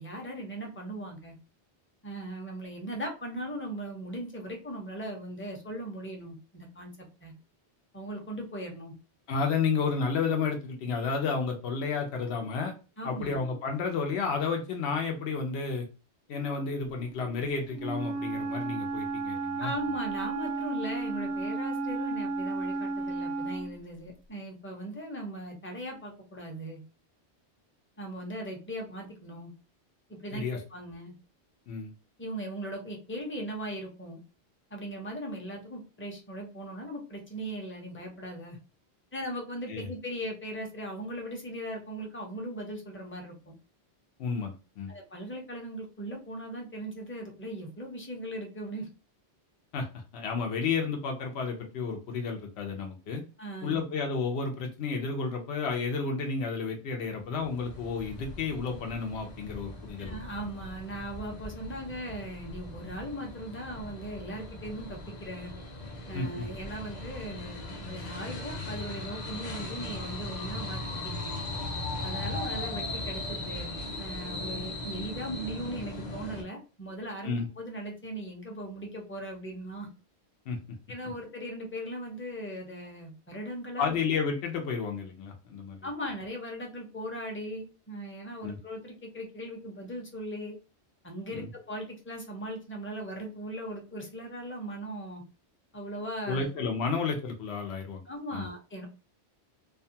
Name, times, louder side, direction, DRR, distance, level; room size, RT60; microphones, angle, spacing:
voice 1, 0.0-1.4 2.0-7.3 7.9-8.9 13.0-13.4 19.6-26.8 28.0-29.5 30.1-31.1 32.2-34.2 34.7-38.6 39.1-43.5 44.9-48.9 53.4-53.8 60.0-65.5 66.1-71.4 72.0-73.7 74.0-79.9 80.9-84.0 85.8-90.6 91.0-95.2 95.7-96.5 98.1-98.9, right 1 dB, 15° left, 1 dB, 0.5 m, -39 dB
voice 2, 9.3-12.7 13.0-15.9 16.3-19.7 30.3-30.6 31.7-31.9 39.7-39.9 44.2-44.9 49.7-49.9 50.1-53.2 53.6-60.2 66.1-66.4 77.2-77.5 80.5-80.6 83.8-85.8 88.4-88.6 91.3-91.5 96.3-98.0 98.3-98.5, left 5 dB, 80° left, 3 dB, 0.9 m, -31 dB
Wind instrument woodwind instrument, 17.7-23.8, right 3 dB, 80° right, 0.8 m, -33 dB
sound 1, 57.2-76.4, left 2 dB, 45° left, 0.7 m, -38 dB
2.5 x 2.3 x 2.7 m, 0.33 s
omnidirectional pair, 1.1 m